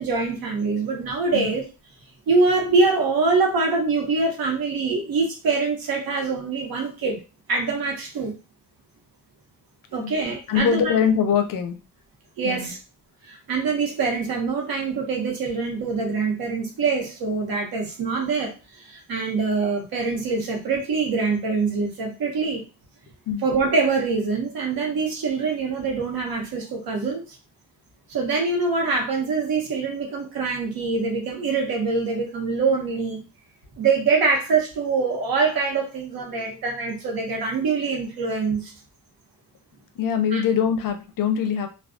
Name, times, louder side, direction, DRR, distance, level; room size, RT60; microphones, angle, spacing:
voice 1, 0.0-1.6 2.3-7.2 7.5-8.3 9.9-10.9 12.4-12.8 13.2-22.6 23.4-27.2 28.1-33.2 33.8-38.7 40.3-40.4, right 4 dB, 70° right, 1 dB, 0.9 m, -24 dB
voice 2, 10.5-11.8 12.4-12.7 22.2-22.3 23.3-23.4 36.3-36.5 40.0-41.7, left 7 dB, 60° left, 7 dB, 0.5 m, -23 dB
2.3 x 2.2 x 2.4 m, 0.31 s
cardioid pair, 100°, 37 cm